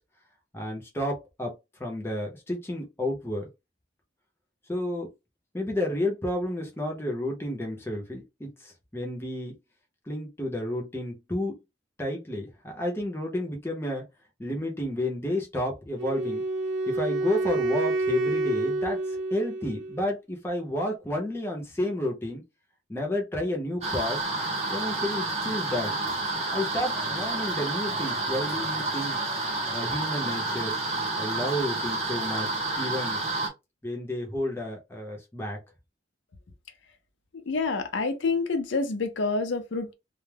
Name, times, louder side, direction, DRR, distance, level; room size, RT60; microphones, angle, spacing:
voice 1, 0.5-1.5 1.8-3.5 4.7-5.1 5.5-9.6 10.1-11.6 12.0-14.1 14.4-16.4 16.9-22.4 22.9-24.2 24.7-26.0 26.5-29.2 29.7-30.8 31.2-33.2 33.8-35.6, left 1 dB, 10° left, 0.6 m, -31 dB
Wind instrument woodwind instrument, 16.0-20.1, right 2 dB, 65° right, 0.8 m, -28 dB
sound 1, 23.8-33.5, right 2 dB, 35° right, 0.7 m, -29 dB
voice 2, 37.3-39.9, left 3 dB, 65° left, 0.5 m, -28 dB
2.2 x 2.0 x 3.3 m
head